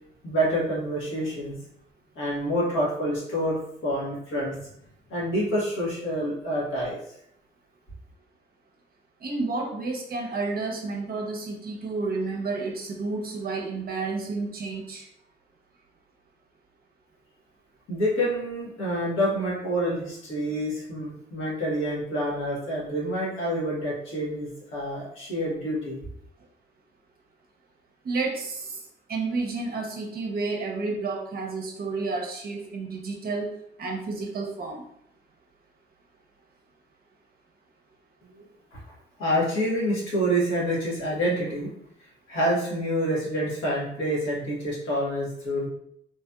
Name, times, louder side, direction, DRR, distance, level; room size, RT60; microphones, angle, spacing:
voice 1, 0.2-1.6 2.1-4.7 5.1-7.0 17.9-26.0 38.4-38.5 38.7-38.8 39.2-41.7 42.3-45.7, equal, 80° left, -5 dB, 1.3 m, -27 dB
voice 2, 9.2-15.1 28.0-28.7 29.1-33.5 33.8-34.8, right 3 dB, 50° right, 0 dB, 0.6 m, -30 dB
3.1 x 2.7 x 2.3 m, 0.72 s
cardioid pair, 90°, 20 cm